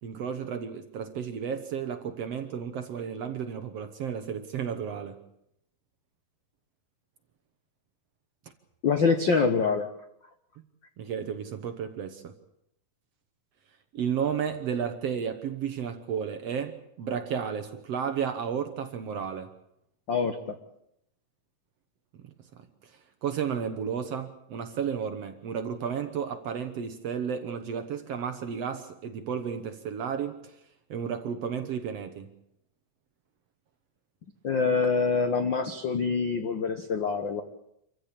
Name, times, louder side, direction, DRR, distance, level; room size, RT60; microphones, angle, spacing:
voice 1, 0.0-5.2 11.0-12.3 13.9-19.5 23.2-30.6 30.9-32.3, right 7 dB, 60° right, 7 dB, 1.8 m, -32 dB
voice 2, 8.8-9.9 20.1-20.4 34.4-37.4, left 5 dB, 80° left, 7 dB, 1.0 m, -25 dB
26.5 x 15.0 x 8.6 m, 0.78 s
omnidirectional pair, 4.0 m